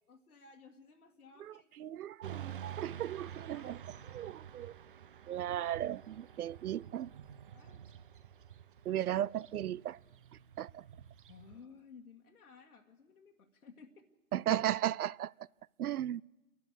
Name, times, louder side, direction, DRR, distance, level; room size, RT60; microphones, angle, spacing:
voice 1, 0.1-1.9 3.5-4.4 7.5-7.9 8.9-9.0 11.3-14.1, left 5 dB, 80° left, 1.9 m, -57 dB
voice 2, 1.8-3.8 4.1-4.7 5.3-7.1 8.9-10.0 10.6-10.8 14.3-15.3 15.8-16.2, right 11 dB, 80° right, 0.6 m, -35 dB
Motorcycle / Traffic noise roadway noise, 2.2-11.6, right 9 dB, 35° right, 0.6 m, -49 dB
30.0 x 11.5 x 8.0 m
hypercardioid pair, 155°, 44 cm